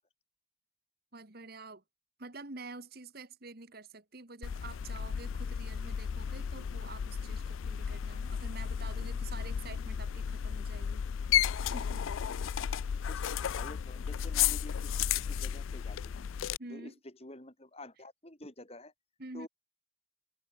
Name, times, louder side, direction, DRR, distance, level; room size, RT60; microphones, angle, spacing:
voice 1, 1.1-1.8 2.2-11.0 11.6-12.1 16.6-17.0 19.2-19.5, right 3 dB, 50° right, 1.9 m, -48 dB
sound 1, 4.4-16.6, left 8 dB, 80° left, 0.4 m, -33 dB
voice 2, 13.1-16.3 16.7-18.9 19.3-19.5, left 1 dB, 30° left, 5.6 m, -49 dB
head